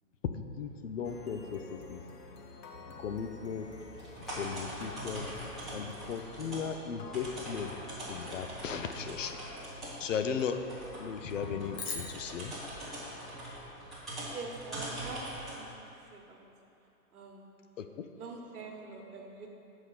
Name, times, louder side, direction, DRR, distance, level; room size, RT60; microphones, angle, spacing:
voice 1, 0.3-2.0 2.8-3.7 4.4-5.3 5.7-7.7 8.1-9.6 10.0-10.6 11.0-12.6 17.8-18.1, left 6 dB, 55° left, 7 dB, 0.5 m, -37 dB
sound 1, 1.0-14.3, left 3 dB, 85° left, 0.9 m, -50 dB
sound 2, 3.1-15.6, right 1 dB, ahead, 0.6 m, -43 dB
sound 3, 11.8-14.2, left 4 dB, 40° left, 1.2 m, -44 dB
voice 2, 14.3-15.2 15.5-15.8 16.1-16.4 17.1-17.5 18.2-19.5, right 4 dB, 70° right, 0 dB, 1.4 m, -44 dB
6.8 x 4.8 x 5.7 m, 2.9 s
hypercardioid pair, 155°, 46 cm